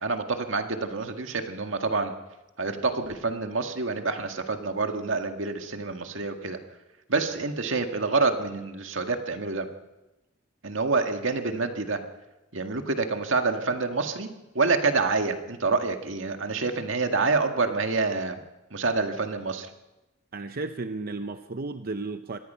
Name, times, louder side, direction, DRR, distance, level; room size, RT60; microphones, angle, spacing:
voice 1, 0.0-2.1 2.6-6.6 7.1-9.7 10.6-12.0 12.5-14.3 14.5-18.4 18.7-19.7, right 3 dB, 80° right, 5 dB, 1.9 m, -27 dB
voice 2, 20.3-22.4, right 3 dB, 50° right, 9 dB, 0.7 m, -34 dB
25.0 x 18.5 x 5.6 m, 1.0 s
head